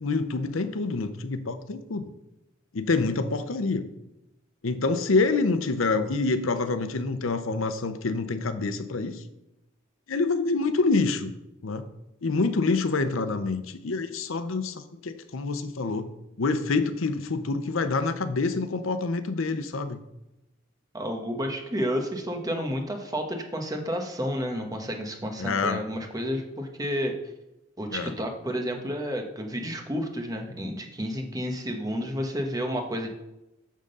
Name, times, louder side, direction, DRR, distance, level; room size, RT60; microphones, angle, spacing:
voice 1, 0.0-2.1 2.7-3.9 4.6-9.2 10.1-11.3 11.6-11.9 12.2-16.1 16.4-20.0 25.4-25.8 27.9-28.1, left 3 dB, 85° left, 10 dB, 0.7 m, -27 dB
voice 2, 20.9-27.1 27.8-33.1, equal, 20° right, 4 dB, 1.0 m, -31 dB
9.2 x 3.8 x 6.7 m, 0.93 s
head